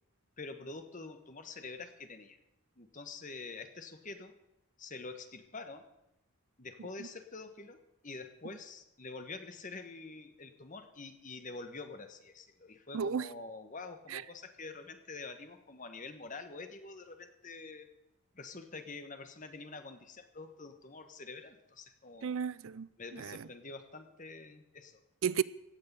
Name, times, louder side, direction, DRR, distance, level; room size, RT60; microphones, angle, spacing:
voice 1, 0.4-2.4 2.8-4.4 4.8-5.9 6.6-17.9 18.3-22.4 23.0-25.0, left 3 dB, 35° left, 1.3 m, -46 dB
voice 2, 12.9-13.3 14.1-14.2 22.2-22.9 23.1-23.4 25.2-25.4, right 7 dB, 65° right, 0.5 m, -33 dB
16.5 x 6.6 x 9.7 m
head